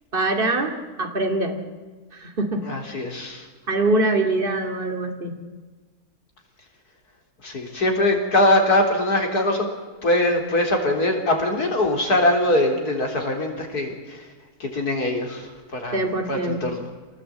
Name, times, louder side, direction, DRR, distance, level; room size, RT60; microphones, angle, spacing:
voice 1, 0.1-1.5 2.1-2.6 3.7-5.3 15.9-16.8, right 2 dB, 35° right, 4 dB, 2.8 m, -23 dB
voice 2, 2.6-3.4 7.4-9.7 10.0-14.2 14.6-16.0 16.3-16.9, left 1 dB, 75° left, 3 dB, 4.3 m, -22 dB
25.5 x 19.0 x 8.7 m, 1.3 s
omnidirectional pair, 1.6 m